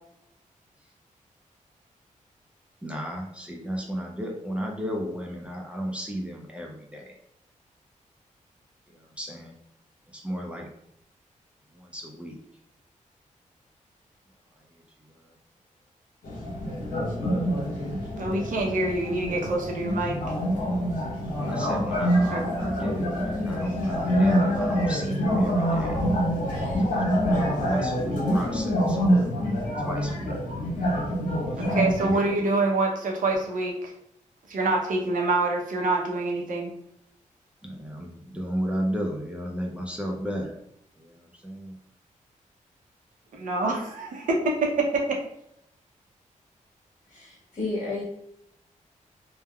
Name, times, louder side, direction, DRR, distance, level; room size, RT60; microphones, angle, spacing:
voice 1, 2.8-7.2 8.9-9.6 10.1-10.7 11.7-12.4 14.5-15.4 21.5-26.0 26.8-29.2 29.8-30.4 31.3-32.5 37.6-40.6 41.0-41.8, equal, 10° right, -1 dB, 0.4 m, -34 dB
sound 1, 16.2-32.1, equal, 85° left, 1.2 m, -26 dB
voice 2, 18.2-20.2 22.3-22.4 31.5-33.9 34.5-36.7 43.3-45.2, right 2 dB, 85° right, 0 dB, 0.6 m, -26 dB
voice 3, 47.1-48.1, left 3 dB, 65° left, -6 dB, 1.4 m, -32 dB
3.4 x 2.1 x 2.2 m, 0.78 s
wide cardioid pair, 140°, 13 cm